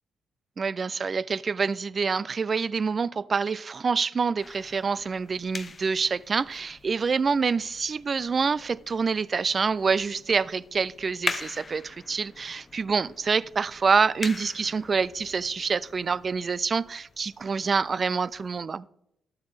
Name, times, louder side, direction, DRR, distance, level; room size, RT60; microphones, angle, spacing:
voice 1, 0.6-18.9, right 5 dB, 45° right, 0.3 m, -26 dB
sound 1, 4.4-18.6, left 4 dB, 40° left, 0.7 m, -42 dB
12.0 x 7.9 x 3.3 m
hypercardioid pair, 45°, 0 cm